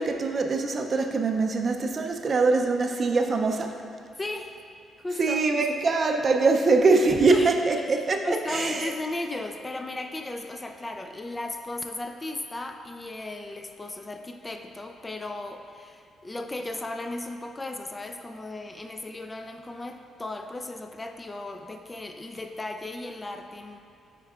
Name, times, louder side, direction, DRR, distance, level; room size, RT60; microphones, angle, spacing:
voice 1, 0.0-3.8 5.2-8.9, right 3 dB, 45° right, 4 dB, 0.4 m, -23 dB
voice 2, 4.2-4.6 5.0-5.4 7.3-23.8, left 2 dB, 20° left, 6 dB, 0.3 m, -35 dB
9.0 x 4.5 x 2.4 m, 2.6 s
cardioid pair, 90°, 0 cm